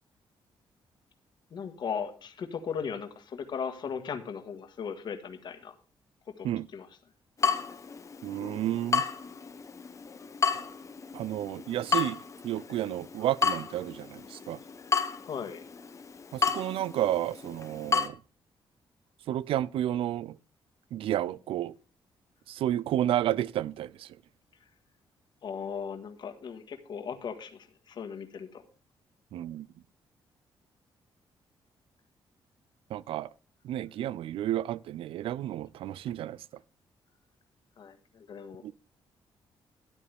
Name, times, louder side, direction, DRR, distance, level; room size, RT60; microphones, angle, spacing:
voice 1, 1.5-5.7 6.4-6.9 15.2-15.6 25.4-28.6 37.8-38.6, left 6 dB, 55° left, 1.6 m, -37 dB
Water tap faucet / Drip, 7.4-18.1, left 5 dB, 35° left, 1.1 m, -32 dB
voice 2, 8.2-9.0 11.1-12.2 12.4-14.6 16.3-18.2 19.3-20.4 20.9-21.7 22.5-24.1 29.3-29.7 32.9-33.3 33.6-36.4 38.6-38.7, right 12 dB, 85° right, 0.4 m, -31 dB
13.0 x 10.0 x 3.5 m
cardioid pair, 120°, 9 cm